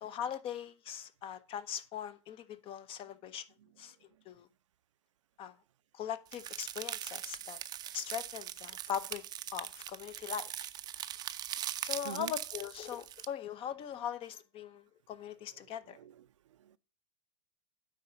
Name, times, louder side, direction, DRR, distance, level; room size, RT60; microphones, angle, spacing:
voice 1, 0.0-3.4 3.8-4.5 5.4-5.5 5.9-7.6 7.9-9.2 9.5-10.5 11.8-16.0, left 9 dB, 35° left, 0.8 m, -40 dB
sound 1, 6.3-13.3, right 11 dB, 25° right, 0.5 m, -41 dB
voice 2, 15.5-16.8, right 11 dB, 75° right, 0.5 m, -48 dB
9.4 x 4.0 x 5.7 m
hypercardioid pair, 105°, 16 cm